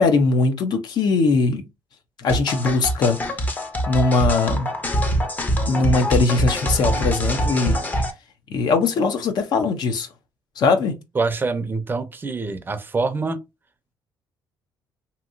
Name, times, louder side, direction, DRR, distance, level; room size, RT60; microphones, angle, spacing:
voice 1, 0.0-1.6 2.2-3.2 3.9-4.7 5.7-7.8 8.5-10.1 10.6-11.0, left 3 dB, 65° left, 0.7 m, -20 dB
sound 1, 2.3-8.1, equal, 20° left, 0.7 m, -23 dB
voice 2, 11.1-13.4, right 3 dB, 25° right, 0.5 m, -25 dB
2.9 x 2.7 x 2.6 m
cardioid pair, 95°, 8 cm